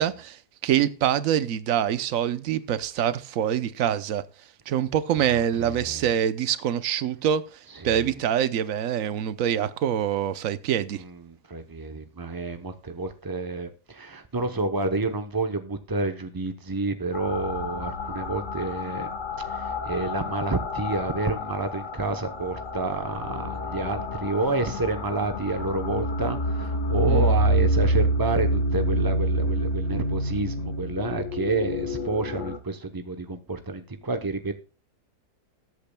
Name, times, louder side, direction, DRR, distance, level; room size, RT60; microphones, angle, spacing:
voice 1, 0.0-4.2 4.7-11.0 27.1-27.3, right 9 dB, 60° right, 1.0 m, -25 dB
voice 2, 5.3-6.0 7.7-8.1 10.9-19.1 19.4-34.5, right 3 dB, 35° right, 0.3 m, -29 dB
sound 1, 17.1-32.6, equal, 50° left, 1.5 m, -28 dB
20.0 x 8.5 x 2.2 m
omnidirectional pair, 1.8 m